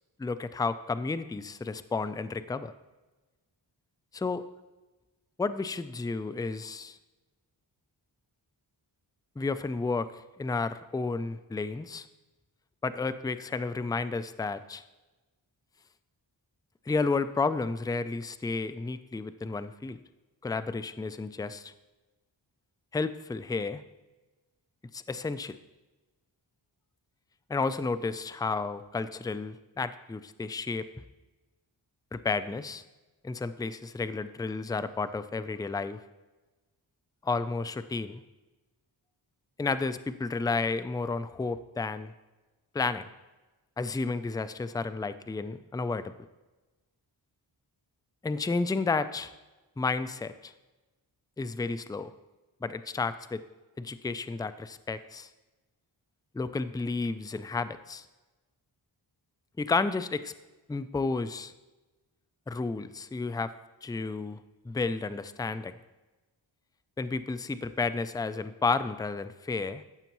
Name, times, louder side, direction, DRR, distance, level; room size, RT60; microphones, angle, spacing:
voice 1, 0.2-2.7 4.1-4.4 5.4-7.0 9.4-10.1 10.4-12.1 12.8-14.8 16.9-20.0 20.4-21.7 22.9-23.8 24.9-25.6 27.5-30.9 32.1-32.8 33.2-36.0 37.2-38.2 39.6-42.1 42.7-43.1 43.8-46.1 48.2-49.3 49.8-50.5 51.4-52.1 52.6-53.4 53.8-55.3 56.3-58.0 59.6-60.3 60.7-61.5 62.5-63.5 63.8-65.7 67.0-69.8, left 4 dB, 10° left, 13 dB, 0.4 m, -32 dB
14.5 x 6.9 x 3.1 m, 1.1 s
cardioid pair, 50°, 48 cm